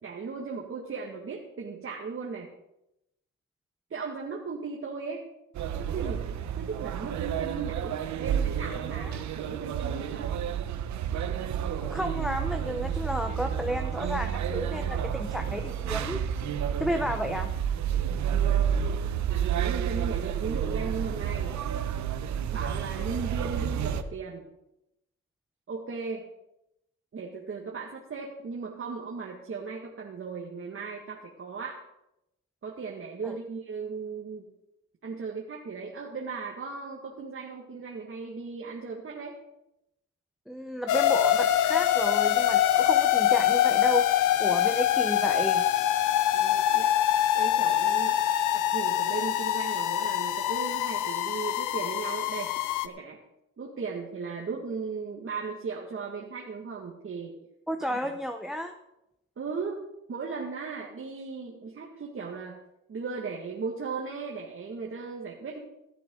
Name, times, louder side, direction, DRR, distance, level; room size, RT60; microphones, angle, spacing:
voice 1, 0.0-2.5 3.9-5.3 5.8-10.3 18.3-18.8 19.3-21.5 22.5-24.5 25.7-26.3 27.1-31.8 32.6-34.4 35.0-39.4 46.3-46.9 47.3-48.2 48.5-52.5 52.8-53.2 53.6-57.3 57.9-58.0 59.4-59.8 60.1-62.6 62.9-65.6, right 5 dB, 45° right, -2 dB, 2.0 m, -37 dB
sound 1, 5.5-24.0, right 8 dB, 70° right, 1.0 m, -30 dB
voice 2, 11.8-16.2 16.8-17.5 33.2-33.4 40.5-44.0 44.4-45.6 57.7-58.7, equal, ahead, 6 dB, 0.9 m, -32 dB
sound 2, 40.9-52.9, left 11 dB, 85° left, 0.7 m, -24 dB
15.5 x 12.5 x 3.9 m, 0.86 s
cardioid pair, 90°, 30 cm